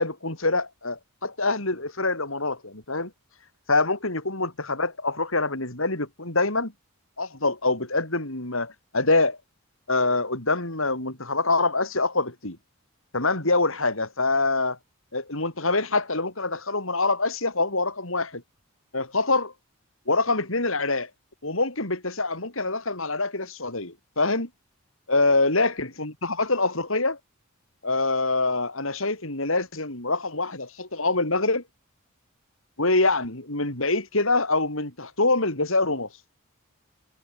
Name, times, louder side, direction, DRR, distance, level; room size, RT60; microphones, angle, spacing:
voice 1, 0.0-3.1 3.7-6.7 7.2-9.4 9.9-12.6 13.1-14.8 15.1-18.4 18.9-19.5 20.1-21.1 21.4-24.5 25.1-27.2 27.8-31.6 32.8-36.1, left 3 dB, 70° left, 5.8 m, -25 dB
head